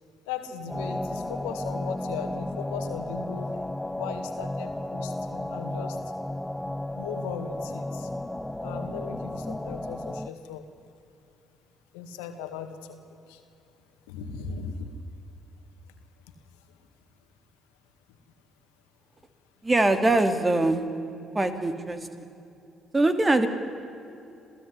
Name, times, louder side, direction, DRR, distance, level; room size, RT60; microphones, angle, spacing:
voice 1, 0.3-3.5 3.9-6.0 6.9-8.1 8.6-10.7 11.9-13.0 13.3-13.4 14.1-14.9, left 7 dB, 80° left, 8 dB, 1.9 m, -38 dB
sound 1, 0.7-10.3, left 1 dB, 10° left, 1.1 m, -33 dB
voice 2, 19.6-20.8 21.3-22.0 22.9-23.5, right 2 dB, 20° right, 9 dB, 2.7 m, -22 dB
27.0 x 16.0 x 9.8 m, 2.8 s
hypercardioid pair, 50°, 0 cm